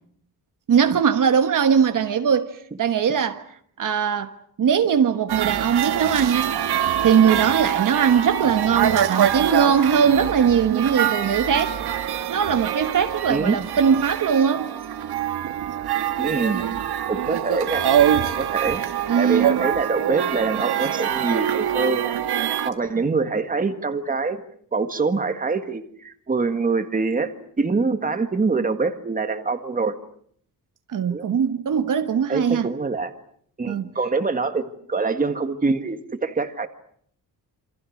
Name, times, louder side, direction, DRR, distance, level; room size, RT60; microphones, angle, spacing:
voice 1, 0.7-2.5 2.8-3.4 3.8-4.3 4.6-6.6 7.0-11.7 12.3-14.7 19.1-19.6 30.9-32.7 33.7-33.8, right 7 dB, 55° right, 1.4 m, -20 dB
sound 1, 5.3-22.7, right 10 dB, 90° right, 1.6 m, -24 dB
voice 2, 16.2-16.6 17.1-17.9 18.4-18.8 19.2-22.0 22.6-24.4 24.7-29.9 31.1-31.3 32.3-33.1 33.6-36.7, right 4 dB, 20° right, 1.8 m, -24 dB
27.5 x 26.5 x 6.5 m
wide cardioid pair, 175°, 38 cm